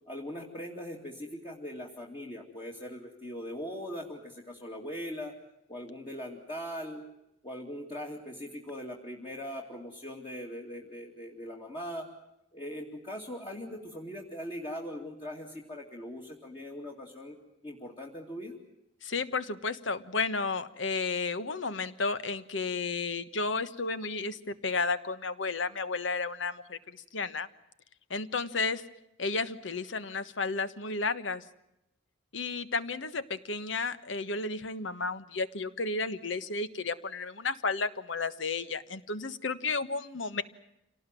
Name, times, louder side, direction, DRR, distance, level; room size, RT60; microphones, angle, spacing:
voice 1, 0.1-5.3 5.7-7.0 7.4-12.1 12.5-17.4 17.6-18.5, equal, 30° left, -2 dB, 2.7 m, -40 dB
voice 2, 19.0-26.8 27.1-27.5 28.1-28.8 29.2-31.4 32.3-40.4, left 4 dB, 80° left, 12 dB, 1.3 m, -32 dB
27.5 x 18.5 x 9.2 m, 0.85 s
head